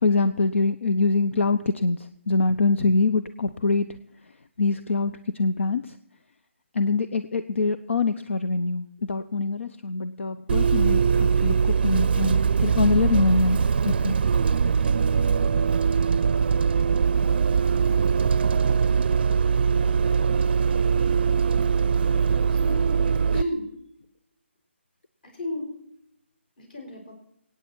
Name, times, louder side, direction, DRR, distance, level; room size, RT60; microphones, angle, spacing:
voice 1, 0.0-3.9 4.6-5.9 6.7-13.6 13.8-14.2, left 3 dB, 70° left, 11 dB, 0.8 m, -24 dB
Bus, 10.5-23.4, right 6 dB, 50° right, 0.5 m, -22 dB
voice 2, 17.7-18.1 22.5-22.9 23.3-23.7 25.2-25.7 26.6-27.1, left 1 dB, 45° left, 3 dB, 5.4 m, -33 dB
22.5 x 9.3 x 4.6 m, 0.77 s
figure-of-eight pair, 155°, 7 cm